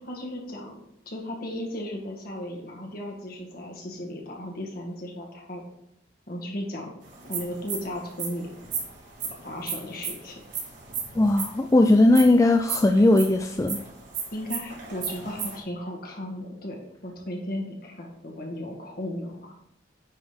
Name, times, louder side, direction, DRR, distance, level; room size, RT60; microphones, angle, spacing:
voice 1, 0.1-5.6 6.3-6.9 7.3-8.5 9.4-10.4 14.3-19.5, left 1 dB, 55° left, 0 dB, 2.0 m, -35 dB
sound 1, 7.1-15.6, right 6 dB, 70° right, 3.2 m, -34 dB
voice 2, 11.2-13.8, left 2 dB, 15° left, 5 dB, 0.3 m, -18 dB
9.6 x 4.0 x 5.3 m, 0.78 s
head